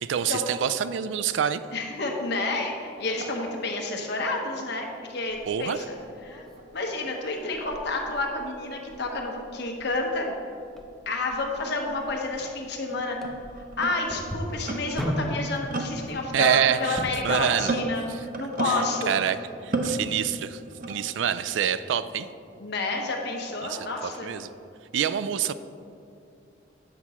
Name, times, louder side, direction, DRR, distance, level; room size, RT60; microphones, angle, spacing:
voice 1, 0.0-1.6 5.5-5.8 16.3-17.8 18.1-18.2 18.6-19.4 19.6-20.6 20.9-22.3 23.6-24.5 24.9-25.5, right 8 dB, 80° right, 14 dB, 0.3 m, -26 dB
voice 2, 1.7-5.9 6.2-6.4 6.7-10.3 11.1-13.2 13.8-18.1 18.4-19.1 22.6-24.3, left 3 dB, 65° left, 1 dB, 1.1 m, -30 dB
sound 1, 3.0-5.8 6.1-9.9 10.8-10.9 11.6-19.4 19.7-21.4, right 2 dB, 50° right, 0.7 m, -36 dB
sound 2, 5.3-17.4, equal, ahead, 0.7 m, -39 dB
8.1 x 5.9 x 4.2 m, 2.5 s
head